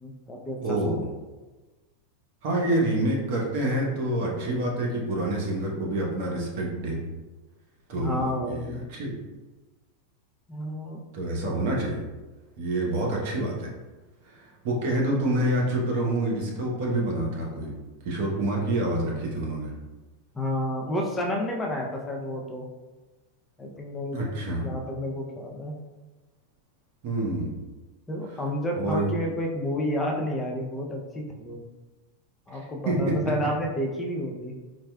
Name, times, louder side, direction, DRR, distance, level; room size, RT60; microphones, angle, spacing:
voice 1, 0.0-1.2 7.9-8.8 10.5-11.0 20.3-22.7 23.6-24.2 24.6-25.7 28.1-31.6 32.5-34.5, left 1 dB, 15° left, 0 dB, 0.5 m, -31 dB
voice 2, 0.6-1.1 2.4-7.0 7.9-9.1 11.1-12.0 12.6-13.7 14.3-17.7 18.0-19.7 24.1-24.7 27.0-27.5 28.8-29.1 32.5-33.1, right 1 dB, 60° right, -2 dB, 0.9 m, -27 dB
4.2 x 2.3 x 2.2 m, 1.2 s
hypercardioid pair, 100°, 0 cm